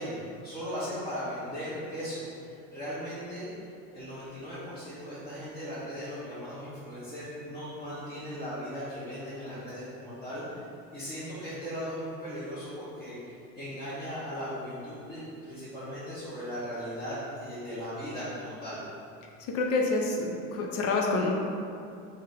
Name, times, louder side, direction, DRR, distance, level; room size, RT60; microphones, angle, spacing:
voice 1, 0.0-3.5 3.9-10.6 10.9-18.9, equal, 20° left, -14 dB, 1.1 m, -38 dB
voice 2, 19.5-21.3, left 3 dB, 50° left, 0 dB, 0.5 m, -27 dB
3.6 x 2.7 x 3.7 m, 2.5 s
cardioid pair, 145°, 31 cm